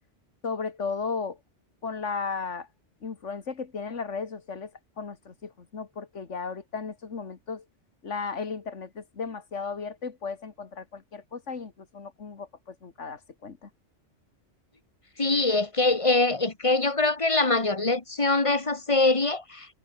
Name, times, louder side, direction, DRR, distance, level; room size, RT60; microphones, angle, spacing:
voice 1, 0.4-1.4 1.8-2.7 3.0-4.7 5.0-7.6 8.0-13.7, left 5 dB, 80° left, 2.2 m, -35 dB
voice 2, 15.2-19.7, left 2 dB, 25° left, 1.7 m, -23 dB
omnidirectional pair, 1.2 m